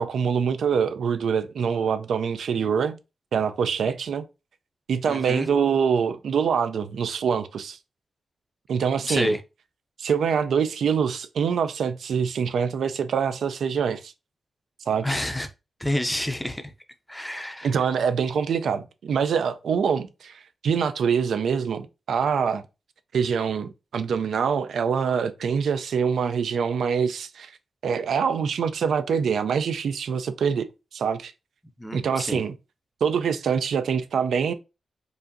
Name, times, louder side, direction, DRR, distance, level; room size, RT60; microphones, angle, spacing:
voice 1, 0.0-3.0 3.3-4.2 4.9-7.8 8.7-9.3 10.0-14.1 14.9-15.1 17.6-22.6 23.1-27.5 27.8-31.3 31.9-32.5 33.0-34.5, right 6 dB, 80° right, 0.4 m, -25 dB
voice 2, 5.1-5.5 9.1-9.4 15.0-15.5 15.8-16.7 17.1-17.7 31.8-32.4, left 1 dB, 5° left, 0.5 m, -28 dB
4.8 x 2.5 x 2.6 m
wide cardioid pair, 150°, 0 cm